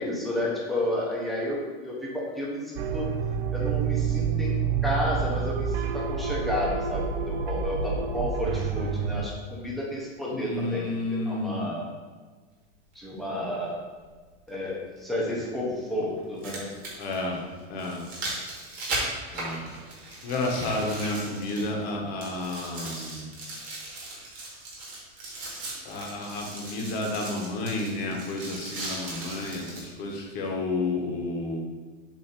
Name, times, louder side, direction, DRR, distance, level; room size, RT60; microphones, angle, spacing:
voice 1, 0.0-3.1 3.5-4.5 4.8-11.0 11.3-11.9 12.9-13.8 14.5-16.7, left 1 dB, ahead, -5 dB, 0.6 m, -31 dB
sound 1, 2.8-9.3, right 6 dB, 85° right, 0.6 m, -28 dB
voice 2, 10.3-11.8 17.0-17.4 17.7-18.0 19.3-19.6 20.2-23.2 25.8-31.6, left 2 dB, 30° left, 0 dB, 0.9 m, -31 dB
sound 2, 12.9-13.0 15.0-15.1 16.2-21.9 22.2-29.9 30.5-30.6, right 2 dB, 25° right, 1.4 m, -37 dB
7.2 x 2.6 x 5.1 m, 1.4 s
supercardioid pair, 175°, 31 cm